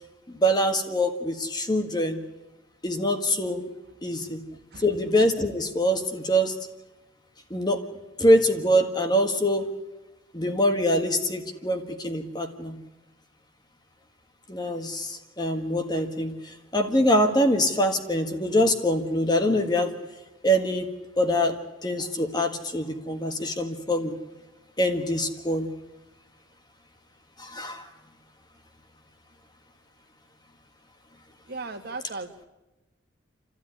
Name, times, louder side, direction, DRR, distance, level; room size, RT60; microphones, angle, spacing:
voice 1, 0.3-2.2 2.8-3.6 4.0-4.4 4.8-6.5 7.5-7.8 8.2-9.7 10.3-12.8 14.5-19.9 20.4-20.9 21.2-21.6 21.8-24.1 24.8-25.7 27.4-27.9, equal, 20° left, 5 dB, 1.6 m, -24 dB
voice 2, 31.5-32.5, right 3 dB, 55° right, 5 dB, 1.7 m, -36 dB
30.0 x 13.0 x 9.9 m, 1.1 s
head